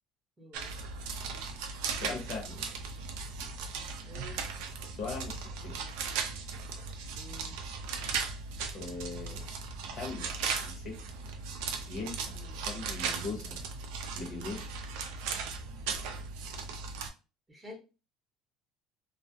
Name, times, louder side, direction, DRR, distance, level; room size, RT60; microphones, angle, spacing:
voice 1, 0.4-0.8 4.1-4.4 7.1-7.6 12.3-12.6 17.5-17.8, left 1 dB, 15° right, 0 dB, 0.7 m, -49 dB
sound 1, 0.5-17.1, right 5 dB, 80° right, 0.4 m, -37 dB
voice 2, 1.9-2.7 4.9-5.8 8.7-9.4 9.9-10.3 10.6-11.0 11.9-13.6 14.1-14.7, left 4 dB, 50° left, 2 dB, 0.7 m, -40 dB
2.3 x 2.0 x 2.6 m, 0.31 s
cardioid pair, 145°, 0 cm